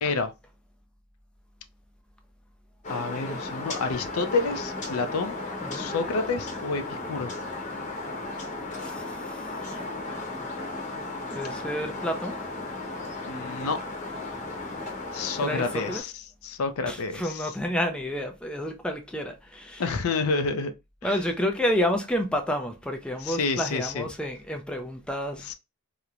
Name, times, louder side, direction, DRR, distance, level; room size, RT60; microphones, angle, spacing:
voice 1, 0.0-0.3 2.9-5.4 5.7-7.3 13.3-13.8 15.1-16.1 16.4-17.5 19.8-20.7 21.0-21.2 23.2-24.1 25.4-25.5, left 4 dB, 80° left, 0.4 m, -29 dB
sound 1, 2.8-16.0, left 2 dB, 35° left, 0.8 m, -35 dB
voice 2, 8.8-9.6 11.3-12.4 15.4-16.0 16.9-19.8 21.0-25.5, equal, 5° left, 0.3 m, -30 dB
3.0 x 2.1 x 2.4 m
head